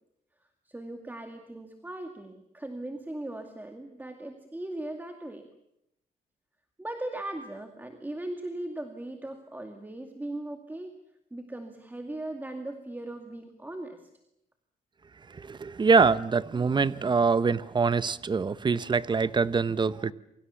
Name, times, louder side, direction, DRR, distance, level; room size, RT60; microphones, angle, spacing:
voice 1, 0.7-5.5 6.8-10.9 11.3-14.0, right 1 dB, 10° right, 2.3 m, -38 dB
voice 2, 15.3-20.1, right 5 dB, 30° right, 0.9 m, -24 dB
28.0 x 24.0 x 7.1 m
cardioid pair, 120°, 16 cm